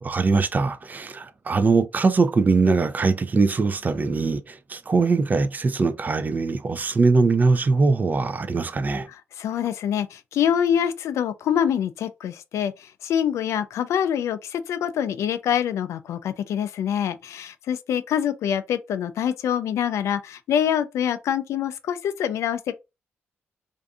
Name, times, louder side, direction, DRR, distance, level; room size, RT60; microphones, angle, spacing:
voice 1, 0.0-9.1, right 4 dB, 35° right, 0.4 m, -21 dB
voice 2, 9.4-22.7, left 9 dB, 75° left, 0.3 m, -25 dB
2.5 x 2.4 x 2.3 m
supercardioid pair, 55°, 5 cm